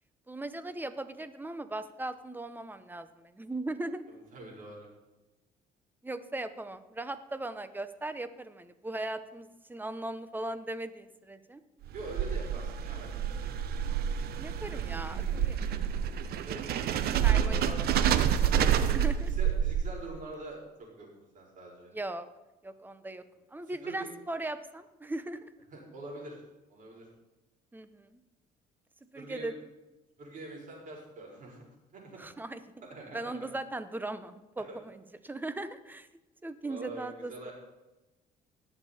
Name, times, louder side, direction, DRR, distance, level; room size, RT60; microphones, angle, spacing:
voice 1, 0.3-4.0 6.0-11.6 14.4-15.6 17.2-17.7 18.9-19.3 21.9-22.3 22.6-23.2 23.5-25.5 27.7-28.2 29.1-29.5 32.2-32.6 33.1-36.1 36.4-37.5, right 2 dB, 10° right, 12 dB, 0.8 m, -38 dB
voice 2, 4.3-4.9 11.9-13.4 16.4-17.8 18.7-21.1 21.3-21.9 23.6-24.1 25.7-26.4 26.7-27.1 29.1-29.5 30.2-31.6 31.9-32.3 32.9-33.5 34.7-34.8 36.6-37.5, right 2 dB, 50° right, -2 dB, 4.8 m, -44 dB
sound 1, 11.8-20.2, right 9 dB, 65° right, 0.8 m, -28 dB
19.0 x 6.9 x 4.3 m, 1.0 s
cardioid pair, 110°, 17 cm